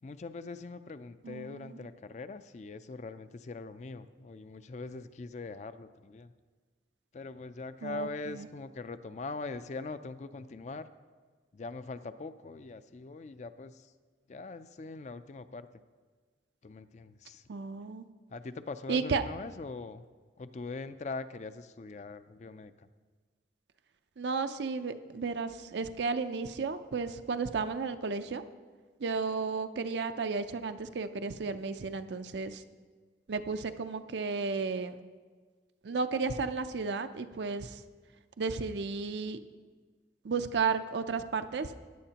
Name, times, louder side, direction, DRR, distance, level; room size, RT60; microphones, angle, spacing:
voice 1, 0.0-6.3 7.1-10.9 11.5-13.9 14.3-15.7 16.6-17.4 18.3-20.0 20.4-22.9, left 3 dB, 40° left, 12 dB, 0.4 m, -42 dB
voice 2, 1.2-1.9 7.8-8.5 17.5-18.1 18.9-19.2 24.2-28.4 29.0-32.6 33.3-35.0 35.8-37.8 38.4-39.4 40.2-41.8, right 4 dB, 75° right, 9 dB, 0.5 m, -33 dB
15.5 x 9.9 x 2.9 m, 1.5 s
head